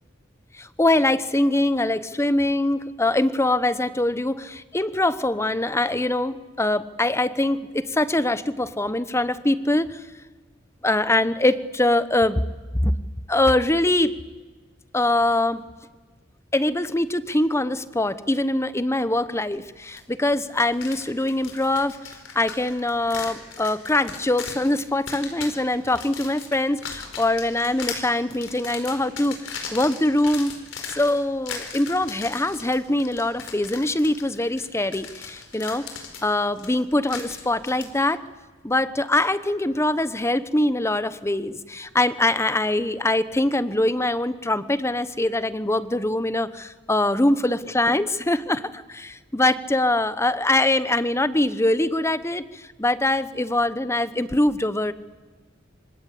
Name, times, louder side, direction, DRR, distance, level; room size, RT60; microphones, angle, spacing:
voice 1, 0.5-10.0 10.8-12.4 12.8-12.9 13.3-14.2 14.9-15.6 16.5-22.0 22.3-29.4 29.7-30.5 30.9-35.9 36.2-38.2 38.6-54.9, left 1 dB, 15° left, 14 dB, 0.9 m, -23 dB
sound 1, 20.0-20.1 20.4-37.9, left 5 dB, 75° left, 4.8 m, -38 dB
26.0 x 25.5 x 8.5 m, 1.3 s
head